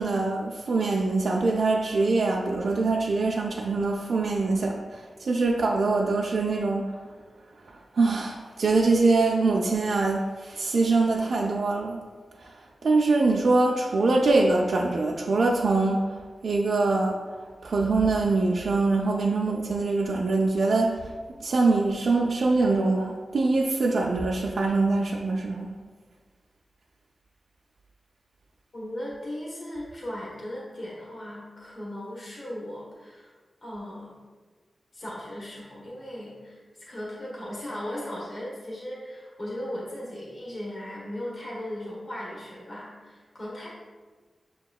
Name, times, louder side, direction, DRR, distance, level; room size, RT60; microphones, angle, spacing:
voice 1, 0.0-6.9 7.7-12.0 12.4-17.2 17.6-21.1 21.4-25.7, right 3 dB, 65° right, -2 dB, 0.3 m, -24 dB
voice 2, 28.7-33.3 33.6-34.2 34.9-43.7, left 1 dB, 45° left, -6 dB, 1.0 m, -37 dB
6.5 x 2.8 x 2.3 m, 1.4 s
wide cardioid pair, 150°, 0 cm